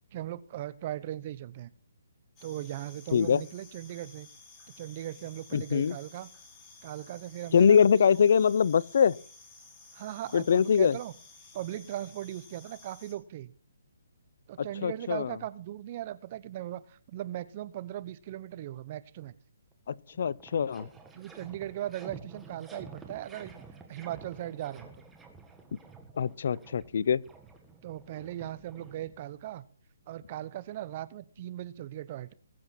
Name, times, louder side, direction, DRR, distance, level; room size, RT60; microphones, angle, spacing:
voice 1, 0.1-1.7 2.4-4.3 4.8-6.3 6.8-8.2 9.9-11.1 11.5-13.5 14.5-19.3 21.1-23.6 23.9-24.9 27.8-29.6 30.1-32.3, right 13 dB, 40° right, 0.9 m, -38 dB
sound 1, 2.4-13.1, left 4 dB, 20° left, 4.6 m, -54 dB
voice 2, 3.1-3.4 5.5-6.0 7.5-9.1 10.3-10.9 14.6-15.3 19.9-20.9 26.2-27.2, left 7 dB, 60° left, 0.6 m, -23 dB
sound 2, 19.7-19.8 20.1-29.5, right 4 dB, 10° right, 1.8 m, -50 dB
21.0 x 7.9 x 4.4 m
hypercardioid pair, 145°, 0 cm